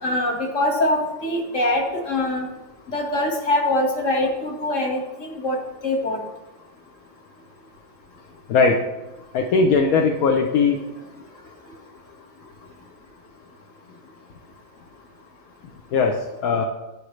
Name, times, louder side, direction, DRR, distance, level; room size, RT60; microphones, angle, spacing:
voice 1, 0.0-2.5 2.9-6.2, left 1 dB, 60° left, 0 dB, 2.0 m, -23 dB
voice 2, 8.5-8.8 9.3-10.8 15.9-16.6, left 4 dB, 80° left, 3 dB, 1.2 m, -19 dB
10.5 x 10.0 x 3.2 m, 1.1 s
omnidirectional pair, 1.5 m